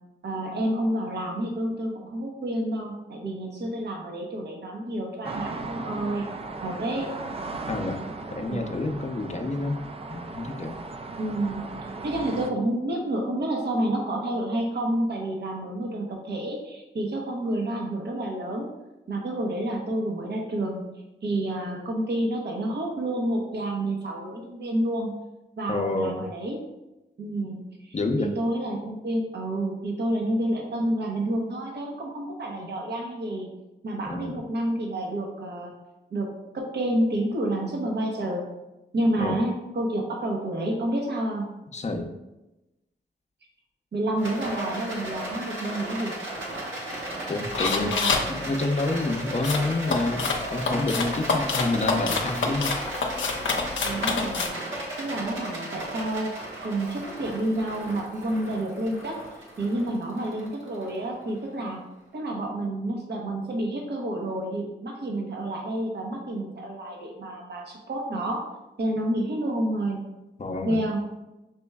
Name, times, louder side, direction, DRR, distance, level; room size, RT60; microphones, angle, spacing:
voice 1, 0.2-6.3 6.6-7.1 11.2-11.7 12.0-18.7 19.1-20.8 21.2-25.1 25.6-26.6 27.2-33.5 33.8-35.7 36.1-36.3 36.5-38.4 38.9-41.5 43.9-46.1 47.9-48.1 53.8-56.3 56.6-59.2 59.6-61.8 62.1-68.4 68.8-70.0 70.6-71.0, right 1 dB, 60° right, 1 dB, 0.9 m, -29 dB
sound 1, 5.2-12.5, right 3 dB, 30° right, 0.4 m, -37 dB
voice 2, 7.7-8.0 8.3-9.8 10.1-10.8 25.7-26.3 27.9-28.3 34.1-34.4 39.2-39.4 41.7-42.1 47.3-47.9 48.3-52.8 70.4-70.8, left 2 dB, 35° left, 5 dB, 0.7 m, -28 dB
Rattle, 44.2-61.5, right 1 dB, 80° right, 1.1 m, -35 dB
sound 2, 47.5-48.3 49.4-54.5, left 4 dB, 75° left, 0.6 m, -27 dB
6.1 x 3.0 x 2.3 m, 0.99 s
cardioid pair, 45°, 20 cm